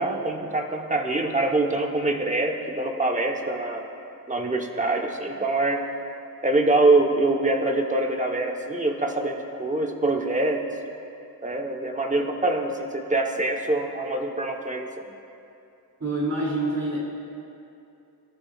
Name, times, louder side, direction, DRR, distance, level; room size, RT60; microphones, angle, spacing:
voice 1, 0.0-3.8 4.3-5.8 6.4-10.6 11.4-15.0, right 2 dB, 20° right, 2 dB, 1.1 m, -24 dB
voice 2, 16.0-17.0, right 2 dB, 45° right, -5 dB, 2.8 m, -26 dB
22.0 x 12.5 x 2.4 m, 2.6 s
wide cardioid pair, 120°, 38 cm